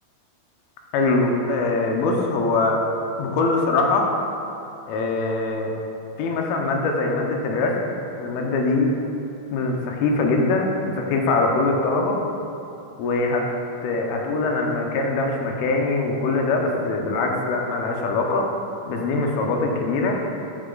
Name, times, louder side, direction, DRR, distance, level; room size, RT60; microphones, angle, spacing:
voice 1, 0.9-2.8 3.2-4.1 4.9-5.7 6.2-8.9 9.5-12.2 13.0-13.5 13.8-18.5 18.9-20.2, left 3 dB, 75° left, 1 dB, 2.5 m, -22 dB
10.5 x 4.3 x 3.8 m, 2.7 s
omnidirectional pair, 4.7 m